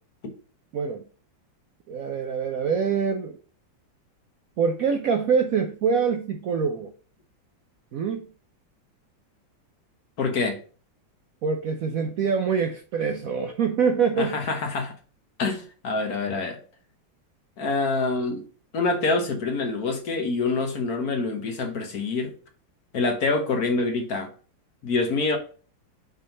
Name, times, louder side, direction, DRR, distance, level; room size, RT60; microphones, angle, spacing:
voice 1, 0.7-1.0 1.9-3.4 4.6-6.9 7.9-8.3 11.4-14.4, right 6 dB, 70° right, 0.8 m, -25 dB
voice 2, 10.2-10.6 14.2-14.9 15.4-16.6 17.6-18.4 18.7-22.3 22.9-24.3 24.8-25.4, left 3 dB, 55° left, 1.5 m, -26 dB
6.0 x 3.7 x 5.3 m
omnidirectional pair, 2.1 m